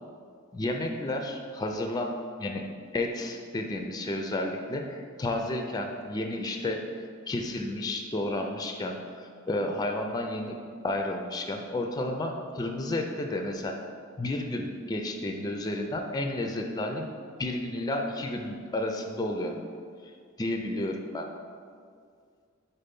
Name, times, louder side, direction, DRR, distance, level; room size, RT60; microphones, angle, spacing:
voice 1, 0.5-2.7 2.9-6.9 7.3-10.6 10.8-13.8 14.2-17.1 17.4-19.6 20.4-21.3, left 1 dB, 20° left, 3 dB, 0.3 m, -31 dB
4.3 x 4.3 x 5.2 m, 2.2 s
head